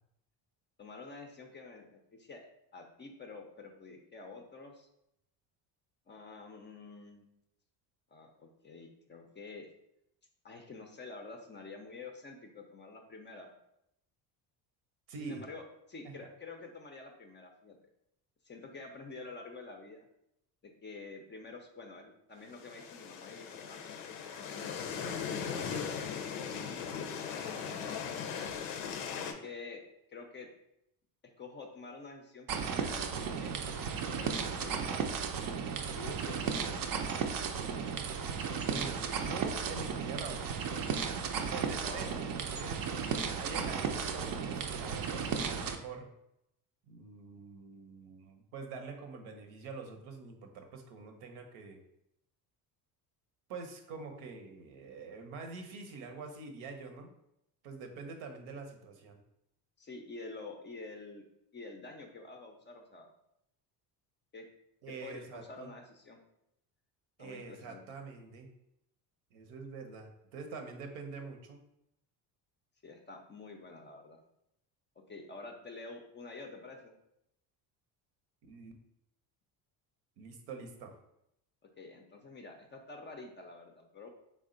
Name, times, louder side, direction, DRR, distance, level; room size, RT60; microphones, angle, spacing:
voice 1, 0.8-2.5 2.7-4.9 6.1-7.3 8.1-9.7 10.4-13.5 15.2-17.7 18.4-20.1 20.6-23.8 24.4-27.7 28.1-28.4 29.2-29.8 30.1-30.5 31.2-33.6 34.2-35.6 35.9-37.0 41.7-42.2 59.8-61.2 61.5-63.1 64.3-64.5 65.0-66.2 67.2-67.8 72.8-74.2 75.1-76.9 81.8-84.1, left 3 dB, 25° left, 3 dB, 0.4 m, -48 dB
voice 2, 15.1-15.5 38.6-41.2 41.5-46.1 46.9-51.8 53.5-57.1 57.6-59.2 64.8-65.7 67.2-68.5 69.3-71.6 78.4-78.7 80.2-80.9, right 4 dB, 70° right, 4 dB, 0.8 m, -45 dB
sound 1, 22.5-29.3, left 7 dB, 90° left, 0.6 m, -39 dB
sound 2, 32.5-45.8, right 6 dB, 45° right, 0.5 m, -35 dB
3.5 x 2.1 x 3.7 m, 0.80 s
supercardioid pair, 75°, 50 cm